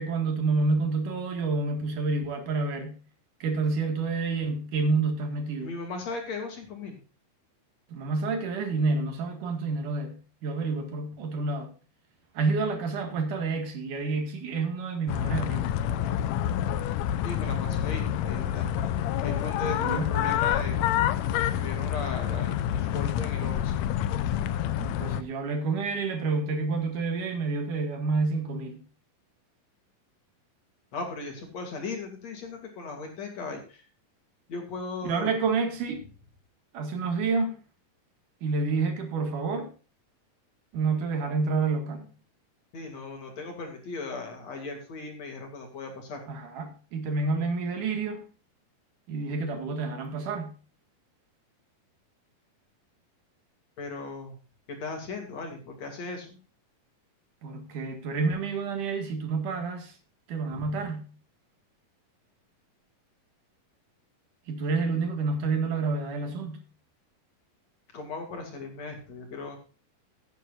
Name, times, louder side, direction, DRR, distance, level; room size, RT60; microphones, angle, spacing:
voice 1, 0.0-3.0 3.4-5.7 7.9-11.7 12.3-15.7 19.7-20.1 24.8-28.8 35.0-36.0 36.7-37.6 38.4-39.7 40.7-42.1 46.3-48.2 49.1-50.5 57.4-60.0 60.3-61.0 64.5-66.6, right 4 dB, 65° right, 3.3 m, -29 dB
voice 2, 5.6-7.0 17.2-18.9 19.2-20.8 21.5-23.8 30.9-33.8 34.5-35.3 42.7-46.2 53.8-54.4 54.7-56.4 60.5-60.7 67.9-69.6, left 3 dB, 50° left, 3.7 m, -37 dB
sound 1, 15.1-25.2, left 10 dB, 85° left, 1.5 m, -28 dB
17.0 x 9.4 x 2.5 m
omnidirectional pair, 4.1 m